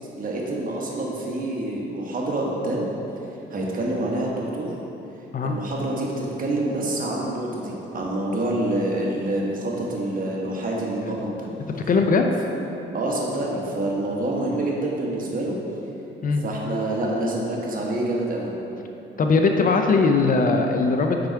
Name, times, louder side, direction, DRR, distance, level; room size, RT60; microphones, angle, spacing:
voice 1, 0.2-2.9 3.5-4.7 5.4-11.5 12.9-15.5 16.4-18.5, right 1 dB, 45° right, -3 dB, 1.3 m, -27 dB
voice 2, 11.7-12.3 16.2-16.5 19.2-21.3, left 4 dB, 45° left, 4 dB, 0.5 m, -20 dB
5.8 x 5.0 x 4.5 m, 3.0 s
cardioid pair, 90°, 20 cm